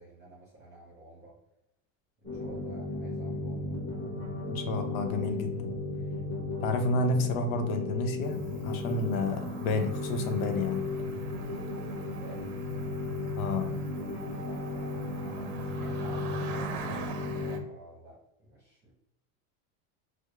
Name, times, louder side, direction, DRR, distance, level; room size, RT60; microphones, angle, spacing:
voice 1, 0.0-1.4 2.2-3.8 12.2-12.6 14.4-18.9, right 2 dB, 25° right, -6 dB, 0.9 m, -51 dB
sound 1, 2.2-17.6, left 2 dB, 10° left, 1.0 m, -35 dB
voice 2, 4.5-5.8 6.6-10.9 13.4-13.7, left 2 dB, 80° left, 7 dB, 0.7 m, -30 dB
Cricket, 8.2-17.6, right 5 dB, 50° right, 0.6 m, -45 dB
4.7 x 2.0 x 2.4 m, 0.85 s
supercardioid pair, 155°, 41 cm